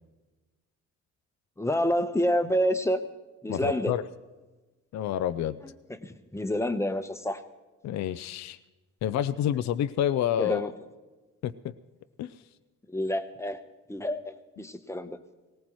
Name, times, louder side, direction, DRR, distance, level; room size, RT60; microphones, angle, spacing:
voice 1, 1.6-3.0 3.4-3.9 5.9-7.4 10.4-10.7 12.9-13.6 13.9-15.2, equal, 10° left, 8 dB, 1.0 m, -28 dB
voice 2, 3.5-4.1 4.9-5.6 7.8-8.6 9.0-10.6 11.4-11.7 12.2-12.3 14.6-14.7, left 11 dB, 65° left, 12 dB, 0.5 m, -28 dB
19.0 x 18.0 x 3.1 m, 1.2 s
cardioid pair, 90°, 30 cm